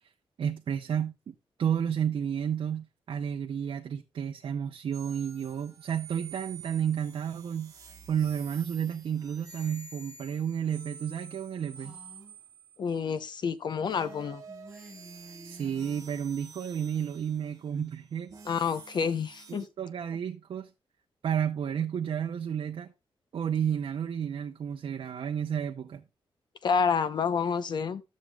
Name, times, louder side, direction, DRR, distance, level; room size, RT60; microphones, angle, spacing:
voice 1, 0.4-7.7 8.1-12.0 15.4-18.3 19.8-20.7 21.2-22.9 23.3-26.0, right 8 dB, 65° right, 0.7 m, -31 dB
sound 1, 4.9-13.2 13.9-19.7, right 5 dB, 35° right, 1.3 m, -50 dB
Female speech woman speaking, 11.7-12.4 13.8-16.1, right 1 dB, ahead, 6.4 m, -50 dB
voice 2, 12.8-14.4 18.4-19.7 26.6-28.0, left 6 dB, 50° left, 0.8 m, -28 dB
13.0 x 7.4 x 2.3 m
wide cardioid pair, 165°, 10 cm